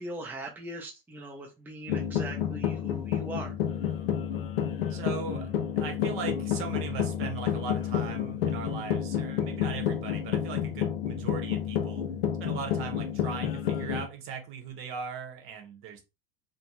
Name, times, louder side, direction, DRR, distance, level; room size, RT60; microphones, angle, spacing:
voice 1, 0.0-3.5, right 2 dB, 5° right, 0 dB, 0.6 m, -40 dB
sound 1, 1.9-14.1, left 9 dB, 75° left, 0.5 m, -30 dB
voice 2, 4.9-12.1 12.4-16.0, right 6 dB, 45° right, 4 dB, 0.9 m, -39 dB
2.5 x 2.1 x 3.0 m, 0.26 s
figure-of-eight pair, 75°, 29 cm